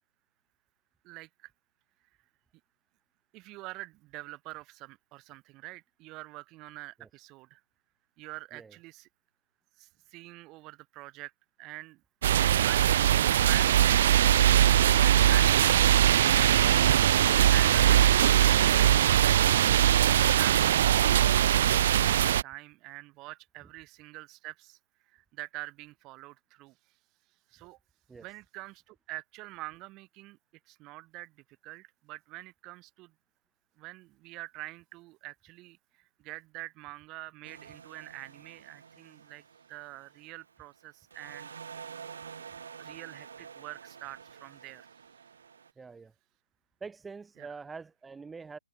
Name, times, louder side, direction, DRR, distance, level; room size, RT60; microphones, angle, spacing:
voice 1, 1.0-1.5 3.3-7.6 8.2-9.1 9.8-11.3 11.6-12.0 12.6-12.9 13.5-15.8 16.2-16.6 17.5-18.9 19.2-19.4 20.0-24.8 25.1-26.8 27.5-27.8 28.2-30.4 30.7-33.1 33.8-41.5 42.8-44.9 47.4-47.5, right 21 dB, 25° right, 2.9 m, -45 dB
sound 1, 12.2-22.4, right 11 dB, 45° right, 0.4 m, -21 dB
sound 2, 37.4-40.8 41.1-45.7, right 6 dB, 60° right, 6.0 m, -48 dB
voice 2, 45.8-46.1 46.8-48.6, right 4 dB, 5° right, 4.0 m, -45 dB
open air
figure-of-eight pair, 140°, 0 cm